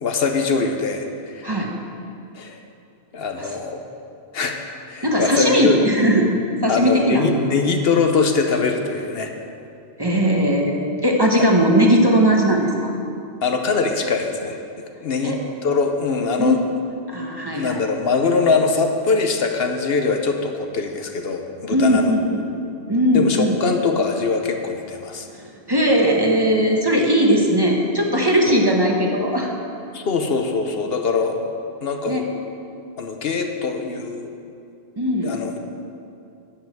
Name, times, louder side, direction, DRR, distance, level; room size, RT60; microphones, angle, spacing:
voice 1, 0.0-1.5 2.3-2.6 3.1-3.8 4.3-4.6 4.9-5.9 6.7-9.3 11.4-11.5 13.4-14.6 15.0-16.6 17.5-22.1 23.1-25.3 28.5-28.6 29.9-31.5 31.8-32.3 33.0-34.3 35.2-35.6, left 4 dB, 70° left, 5 dB, 1.0 m, -22 dB
voice 2, 5.0-6.3 6.6-7.3 10.0-12.9 15.2-15.4 16.4-16.6 17.1-17.8 21.7-22.4 22.9-23.6 25.4-29.5 32.0-32.2 35.0-35.4, equal, 25° right, 0 dB, 1.0 m, -18 dB
11.5 x 5.5 x 7.7 m, 2.5 s
omnidirectional pair, 1.1 m